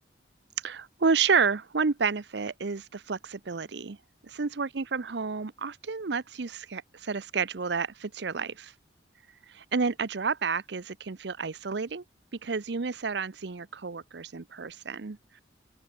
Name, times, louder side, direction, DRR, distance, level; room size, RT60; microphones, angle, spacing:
voice 1, 0.6-4.0 4.2-8.7 9.5-12.0 12.4-15.2, right 5 dB, 70° right, 0.7 m, -30 dB
open air
head